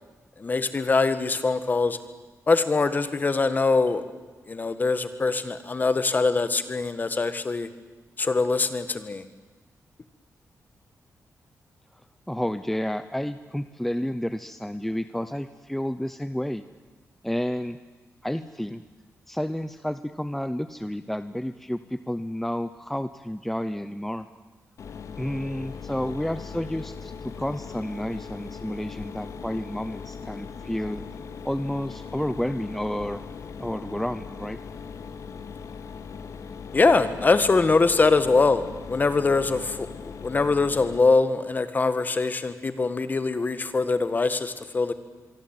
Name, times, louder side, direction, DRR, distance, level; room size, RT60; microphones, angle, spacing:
voice 1, 0.4-2.0 2.5-4.0 4.5-7.7 8.2-9.2 36.7-38.6 38.9-44.9, left 3 dB, 30° left, 11 dB, 1.9 m, -23 dB
voice 2, 12.3-16.6 17.2-17.8 18.2-18.8 19.3-24.3 25.2-31.0 31.4-33.2 33.6-34.6, equal, 5° left, 11 dB, 0.8 m, -30 dB
Mechanisms, 24.8-41.0, left 6 dB, 65° left, 2.3 m, -39 dB
25.5 x 23.5 x 9.2 m, 1.3 s
wide cardioid pair, 120°, 6 cm